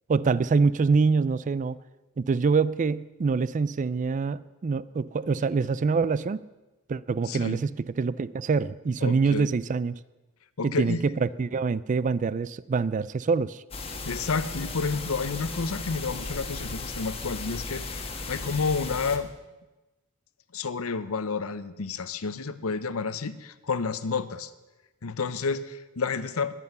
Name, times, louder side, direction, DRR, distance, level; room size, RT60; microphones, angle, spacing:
voice 1, 0.1-1.8 2.2-6.4 6.9-9.9 10.6-13.6, right 4 dB, 35° right, 19 dB, 0.3 m, -25 dB
voice 2, 7.3-7.6 9.0-9.5 10.6-11.1 14.1-19.3 20.5-24.5 25.0-26.5, left 4 dB, 80° left, 14 dB, 0.8 m, -30 dB
sound 1, 13.7-19.2, left 3 dB, 25° left, 1.3 m, -36 dB
11.0 x 11.0 x 7.9 m, 1.1 s
head